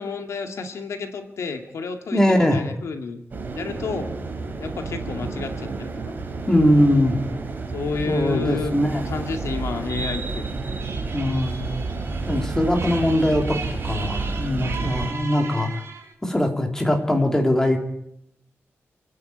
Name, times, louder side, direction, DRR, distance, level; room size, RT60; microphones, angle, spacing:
voice 1, 0.0-3.2 3.6-4.1 4.6-6.0 7.7-8.7 9.1-10.5, left 4 dB, 85° left, 5 dB, 2.1 m, -30 dB
voice 2, 2.1-2.6 6.5-7.2 8.1-9.1 11.1-11.7 12.3-13.6 13.8-15.7 16.2-17.8, left 1 dB, 10° left, 3 dB, 3.0 m, -21 dB
sound 1, 3.3-15.1, right 3 dB, 40° right, 3.4 m, -30 dB
sound 2, 10.8-16.1, right 4 dB, 60° right, 5.4 m, -37 dB
27.5 x 9.8 x 9.7 m, 0.75 s
wide cardioid pair, 170°, 5 cm